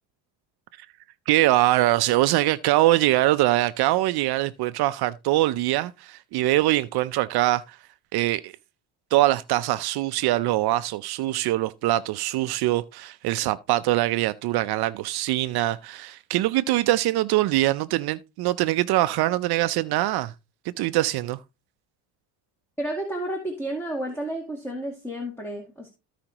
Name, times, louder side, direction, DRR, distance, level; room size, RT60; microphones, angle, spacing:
voice 1, 1.3-7.8 8.1-8.5 9.1-20.3 20.8-21.4, right 16 dB, 65° right, 0.6 m, -23 dB
voice 2, 22.8-25.9, right 1 dB, 5° left, 2.1 m, -31 dB
15.0 x 5.0 x 2.9 m
cardioid pair, 115°, 41 cm